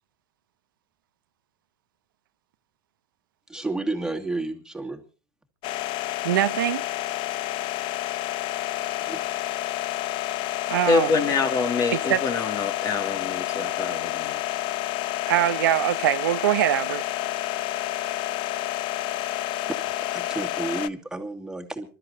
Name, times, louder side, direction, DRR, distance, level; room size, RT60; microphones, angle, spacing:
voice 1, 3.5-5.0 9.0-9.2 19.7-19.8 20.0-21.9, right 2 dB, 5° right, 2.4 m, -31 dB
sound 1, 5.6-20.9, left 15 dB, 50° left, 0.7 m, -29 dB
voice 2, 6.2-6.9 10.7-11.1 11.9-12.2 15.3-17.0, right 13 dB, 90° right, 0.9 m, -23 dB
voice 3, 10.9-14.4, left 4 dB, 35° left, 2.3 m, -25 dB
27.0 x 13.0 x 2.8 m
supercardioid pair, 115°, 11 cm